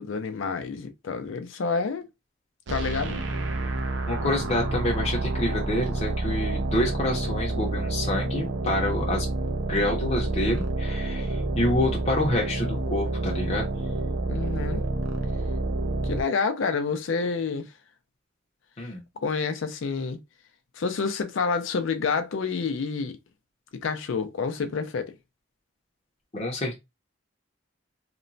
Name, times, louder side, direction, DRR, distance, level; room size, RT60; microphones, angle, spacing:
voice 1, 0.0-2.1 2.7-3.2 14.3-14.8 16.0-17.7 19.2-20.2 20.8-23.2 23.7-25.2, left 5 dB, 75° left, 0.4 m, -28 dB
sound 1, 2.7-16.2, right 2 dB, 65° right, 0.4 m, -28 dB
voice 2, 4.1-13.7 18.8-19.0 26.3-26.8, left 1 dB, 30° left, 0.6 m, -27 dB
2.9 x 2.1 x 2.6 m
head